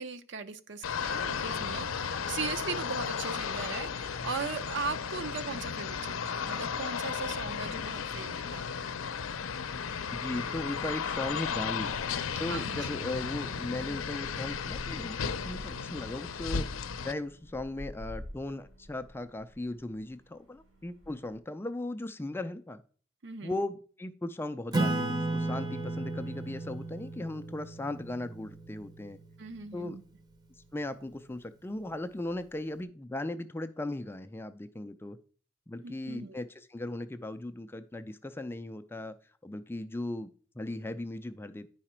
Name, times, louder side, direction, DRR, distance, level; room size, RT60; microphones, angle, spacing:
voice 1, 0.0-8.9 12.5-12.9 23.2-23.6 29.4-30.0 35.8-36.3, right 5 dB, 60° right, 11 dB, 0.6 m, -39 dB
sound 1, 0.8-17.1, left 6 dB, 80° left, 0.6 m, -34 dB
voice 2, 10.1-11.9 12.4-22.8 23.4-29.2 29.7-30.0 30.7-35.2 35.7-36.5 36.7-39.1 39.4-41.7, left 2 dB, 10° left, 10 dB, 0.3 m, -37 dB
sound 2, 10.2-21.4, left 1 dB, 75° right, 3.7 m, -50 dB
Acoustic guitar / Strum, 24.7-29.7, right 2 dB, 20° right, 0.7 m, -34 dB
10.0 x 4.9 x 4.3 m, 0.44 s
head